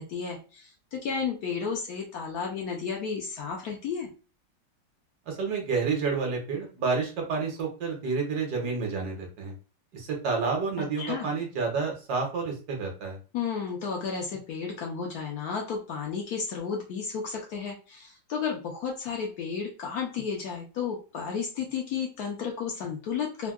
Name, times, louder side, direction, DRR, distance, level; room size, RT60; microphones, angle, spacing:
voice 1, 0.0-4.1 10.8-11.3 13.3-23.5, left 6 dB, 70° left, 0 dB, 1.0 m, -33 dB
voice 2, 5.3-9.5 9.9-13.2, right 4 dB, 65° right, 1 dB, 1.3 m, -29 dB
3.5 x 2.2 x 2.3 m, 0.34 s
omnidirectional pair, 2.0 m